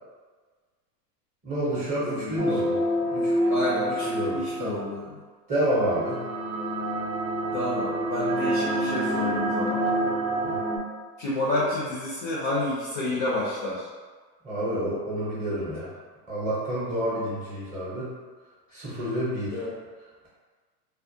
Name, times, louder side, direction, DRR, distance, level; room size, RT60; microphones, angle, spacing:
voice 1, 1.4-2.8 3.1-3.3 4.0-4.7 5.5-6.2 10.4-10.6 14.4-15.9 16.3-18.1 18.7-19.6, right 1 dB, 15° right, -8 dB, 0.6 m, -29 dB
voice 2, 2.1-2.6 3.5-5.2 7.5-9.8 11.2-13.9 18.7-18.9 19.5-19.7, left 2 dB, 35° left, -7 dB, 0.3 m, -30 dB
sound 1, 2.4-4.9 5.8-10.8, right 1 dB, 50° right, 0.6 m, -27 dB
2.3 x 2.1 x 2.6 m, 1.4 s
supercardioid pair, 135°, 49 cm